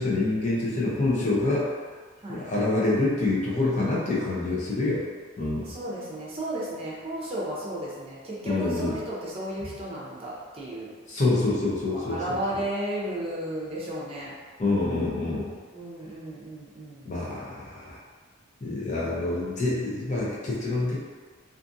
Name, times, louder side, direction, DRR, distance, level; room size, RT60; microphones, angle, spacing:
voice 1, 0.0-1.7 2.3-5.0 5.4-5.7 8.4-8.9 11.1-12.4 14.6-15.5 17.0-18.0 18.6-21.0, left 2 dB, 35° left, -6 dB, 0.6 m, -26 dB
voice 2, 5.6-10.9 11.9-14.3 15.7-17.1, right 1 dB, 30° right, -6 dB, 0.6 m, -34 dB
2.5 x 2.5 x 2.6 m, 1.5 s
head